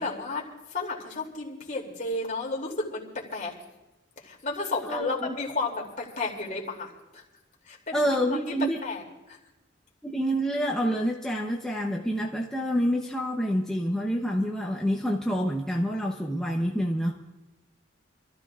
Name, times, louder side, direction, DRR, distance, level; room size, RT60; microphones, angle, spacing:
voice 1, 0.0-3.5 4.2-7.2 7.6-8.1 8.5-8.6 8.8-9.4, left 3 dB, 45° left, -1 dB, 2.9 m, -33 dB
voice 2, 4.9-5.3 7.9-8.8 10.0-17.2, equal, 5° left, -2 dB, 0.8 m, -27 dB
27.0 x 14.0 x 2.5 m, 1.0 s
head